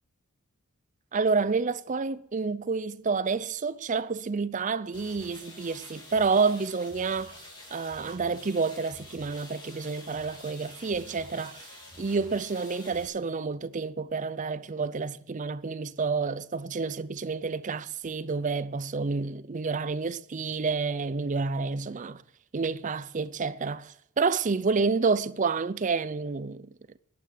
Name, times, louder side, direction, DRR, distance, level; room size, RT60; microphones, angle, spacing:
voice 1, 1.1-7.4 7.7-11.7 12.0-22.2 22.5-26.7, right 4 dB, 35° right, 0.5 m, -29 dB
sound 1, 4.9-13.0, left 1 dB, 20° left, 3.1 m, -48 dB
11.5 x 10.0 x 9.5 m
head